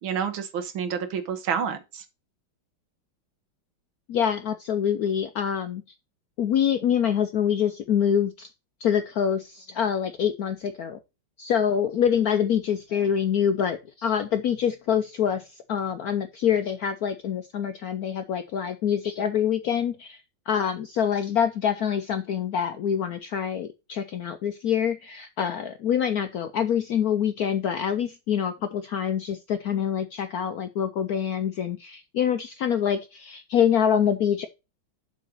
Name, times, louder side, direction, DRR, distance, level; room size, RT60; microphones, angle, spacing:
voice 1, 0.0-2.0, right 7 dB, 75° right, 1.9 m, -29 dB
voice 2, 4.1-5.8 6.4-8.5 8.8-11.0 11.4-20.2 20.5-34.5, left 8 dB, 75° left, 0.8 m, -25 dB
7.4 x 3.9 x 6.7 m
omnidirectional pair, 2.2 m